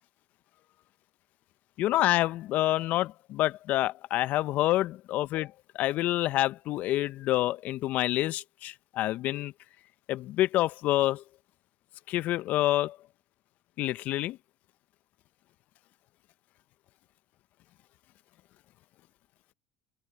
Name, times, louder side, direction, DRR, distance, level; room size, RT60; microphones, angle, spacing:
voice 1, 1.8-9.5 10.1-11.2 12.1-13.0 13.8-14.4, left 15 dB, 60° left, 1.2 m, -27 dB
open air
hypercardioid pair, 65°, 3 cm